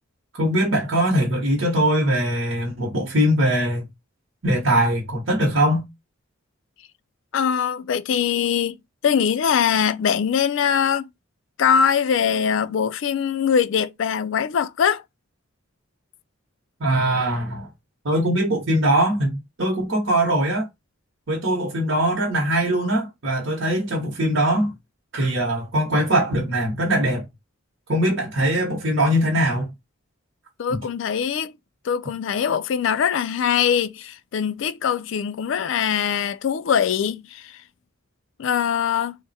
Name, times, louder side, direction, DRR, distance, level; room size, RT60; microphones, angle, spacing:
voice 1, 0.3-3.8 4.4-5.8 16.8-17.7 18.0-20.7 21.3-24.7 25.1-27.3 27.9-29.7 30.7-30.8, right 1 dB, 60° right, 1.0 m, -21 dB
voice 2, 7.3-8.8 9.0-11.0 11.6-15.0 30.6-31.5 31.8-37.6 38.4-39.1, left 7 dB, 65° left, 0.3 m, -22 dB
3.5 x 2.1 x 4.1 m
head